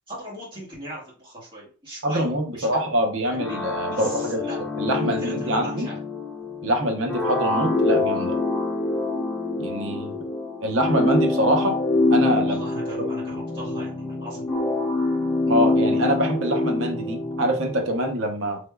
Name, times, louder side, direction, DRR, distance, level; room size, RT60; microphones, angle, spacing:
voice 1, 0.1-2.8 3.3-3.6 3.9-4.6 4.9-6.0 12.4-14.4, right 1 dB, 25° right, -5 dB, 1.6 m, -38 dB
voice 2, 2.0-4.4 4.8-5.9 6.6-8.4 9.6-10.2 10.6-11.7 12.1-12.6 15.5-18.6, equal, 60° right, 3 dB, 0.7 m, -24 dB
sound 1, 3.4-17.9, left 2 dB, 5° left, 1.0 m, -25 dB
3.4 x 3.1 x 2.2 m, 0.37 s
head